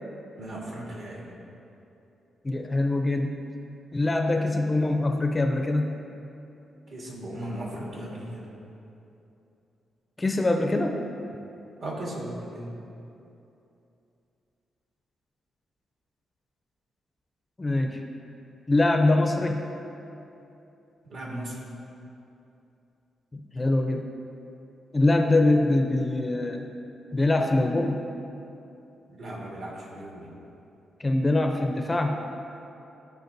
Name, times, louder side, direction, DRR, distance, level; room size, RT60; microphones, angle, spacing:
voice 1, 0.4-1.3 6.9-8.5 11.8-12.8 21.1-21.6 29.1-30.3, right 1 dB, 60° right, -3 dB, 1.6 m, -37 dB
voice 2, 2.4-3.4 3.9-6.0 10.2-11.0 17.6-18.0 18.7-19.7 23.3-24.1 24.9-26.6 27.1-28.0 31.0-32.2, left 2 dB, 20° left, 3 dB, 0.5 m, -23 dB
13.0 x 4.7 x 2.6 m, 2.8 s
cardioid pair, 125°, 0 cm